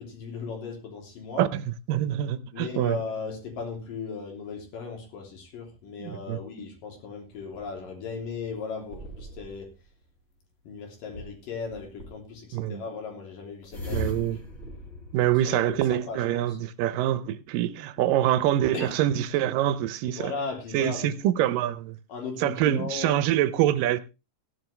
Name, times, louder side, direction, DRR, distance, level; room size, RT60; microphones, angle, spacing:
voice 1, 0.0-1.5 2.5-9.7 10.6-14.3 15.4-16.6 18.0-18.1 18.7-18.9 20.2-21.2 22.1-23.2, left 5 dB, 75° left, 4.8 m, -37 dB
voice 2, 1.4-3.0 6.0-6.4 12.5-12.8 13.9-14.4 15.1-20.3 20.7-22.0 22.4-24.0, right 12 dB, 80° right, 2.4 m, -25 dB
sound 1, 7.3-9.8 11.7-12.4 13.7-16.1, left 1 dB, 20° left, 3.7 m, -40 dB
16.0 x 11.0 x 3.3 m
omnidirectional pair, 3.9 m